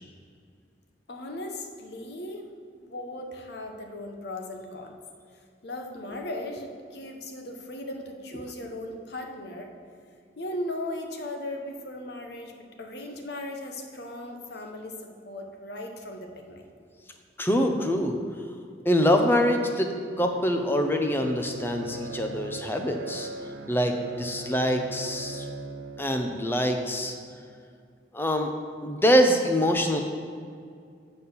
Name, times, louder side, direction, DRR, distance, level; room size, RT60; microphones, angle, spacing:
voice 1, 1.1-2.5 2.8-4.9 5.6-9.7 10.4-16.6, left 1 dB, 55° left, 3 dB, 0.9 m, -37 dB
voice 2, 17.4-18.2 18.8-23.3 23.7-25.4 26.0-27.1 28.1-28.5 28.8-30.0, equal, 10° left, 4 dB, 0.6 m, -24 dB
Bowed string instrument, 19.6-27.4, right 2 dB, 75° right, 0.7 m, -41 dB
8.3 x 4.2 x 6.9 m, 2.2 s
head